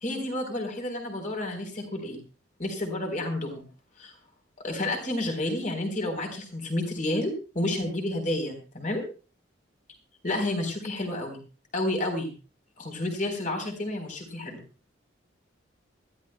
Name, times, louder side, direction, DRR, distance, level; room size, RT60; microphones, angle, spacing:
voice 1, 0.0-2.2 2.6-3.6 4.0-4.1 4.6-9.0 10.2-11.4 11.7-12.3 12.8-14.6, left 1 dB, 40° left, 3 dB, 3.9 m, -30 dB
23.5 x 13.5 x 2.2 m, 0.35 s
head